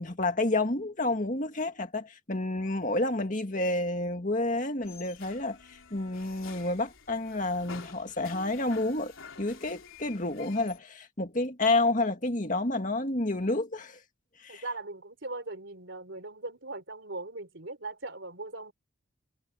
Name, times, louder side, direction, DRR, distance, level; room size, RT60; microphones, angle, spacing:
voice 1, 0.0-9.1 9.4-14.0 14.4-14.6, left 2 dB, 40° left, 2.1 m, -29 dB
sound 1, 4.8-10.8, left 5 dB, 75° left, 3.3 m, -49 dB
voice 2, 14.5-18.7, right 2 dB, 60° right, 3.6 m, -39 dB
head